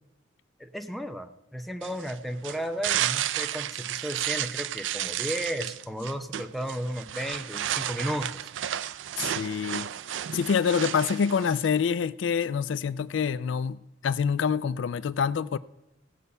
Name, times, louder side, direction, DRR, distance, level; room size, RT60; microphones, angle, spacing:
voice 1, 0.6-8.5, equal, ahead, 0.6 m, -34 dB
sound 1, 1.8-11.7, right 11 dB, 75° right, 0.4 m, -32 dB
voice 2, 9.2-9.9 10.3-15.6, left 6 dB, 75° left, 0.4 m, -26 dB
16.5 x 8.0 x 5.5 m
head